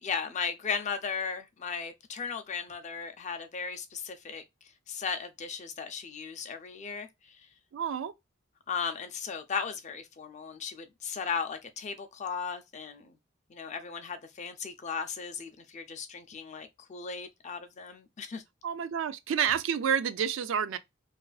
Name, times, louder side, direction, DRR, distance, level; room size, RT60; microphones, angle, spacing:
voice 1, 0.0-4.4 4.9-7.4 8.7-13.1 13.5-18.4, left 6 dB, 35° left, 0.4 m, -36 dB
voice 2, 7.7-8.1 18.6-20.8, right 8 dB, 65° right, 0.3 m, -29 dB
2.4 x 2.3 x 2.2 m
head